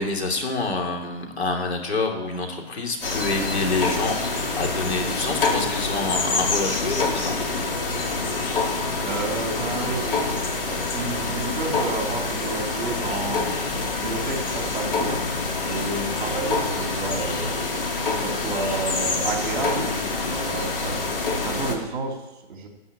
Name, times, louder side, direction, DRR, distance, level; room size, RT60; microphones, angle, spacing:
voice 1, 0.0-7.4, left 3 dB, 75° left, 2 dB, 3.1 m, -27 dB
sound 1, 3.0-21.8, left 3 dB, 55° left, 2.3 m, -26 dB
voice 2, 9.0-10.2 10.7-13.4 13.8-15.3 15.6-17.5 18.1-21.0 21.4-22.2 22.5-22.7, right 3 dB, 45° right, 1 dB, 3.5 m, -31 dB
13.5 x 5.7 x 8.8 m, 0.99 s
hypercardioid pair, 170°, 33 cm